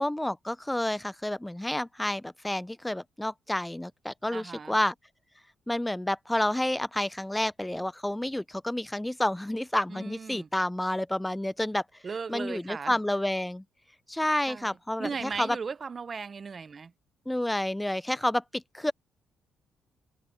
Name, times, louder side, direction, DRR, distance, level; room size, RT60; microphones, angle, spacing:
voice 1, 0.0-4.9 5.7-11.8 12.3-13.6 14.1-15.6 17.3-18.9, left 1 dB, 5° left, 0.5 m, -29 dB
voice 2, 4.3-4.8 9.9-10.5 12.0-13.0 14.5-16.9, right 5 dB, 40° right, 0.7 m, -37 dB
cardioid pair, 90°, 0 cm